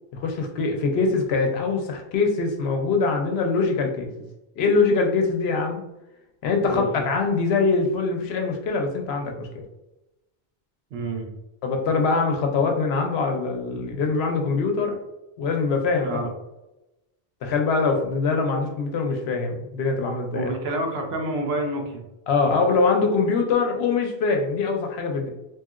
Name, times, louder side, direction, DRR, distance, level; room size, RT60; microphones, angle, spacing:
voice 1, 0.1-4.1 4.6-5.8 6.4-9.5 11.6-15.0 15.4-16.3 17.4-20.5 22.3-25.3, left 4 dB, 80° left, 2 dB, 0.9 m, -23 dB
voice 2, 10.9-11.3 16.0-16.3 20.3-22.0, right 1 dB, 75° right, 2 dB, 0.9 m, -28 dB
2.9 x 2.7 x 2.4 m, 0.96 s
omnidirectional pair, 1.0 m